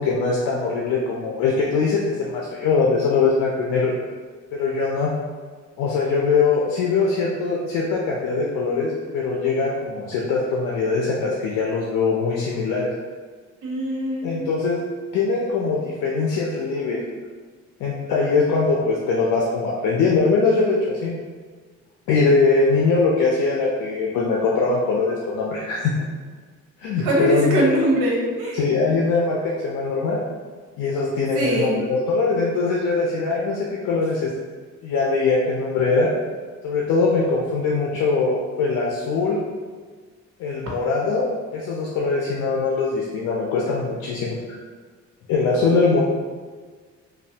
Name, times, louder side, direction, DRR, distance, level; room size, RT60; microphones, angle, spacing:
voice 1, 0.0-3.9 4.5-5.1 5.8-12.9 14.2-14.8 15.1-17.0 17.8-21.1 22.1-25.9 26.8-27.7 28.5-30.2 30.8-34.3 34.8-36.1 36.6-39.4 40.4-44.4 45.3-46.0, left 4 dB, 85° left, -3 dB, 0.5 m, -22 dB
voice 2, 13.6-14.5 27.0-28.6 31.3-31.8, right 1 dB, 85° right, -3 dB, 0.8 m, -22 dB
3.1 x 2.3 x 2.7 m, 1.5 s
cardioid pair, 90°, 30 cm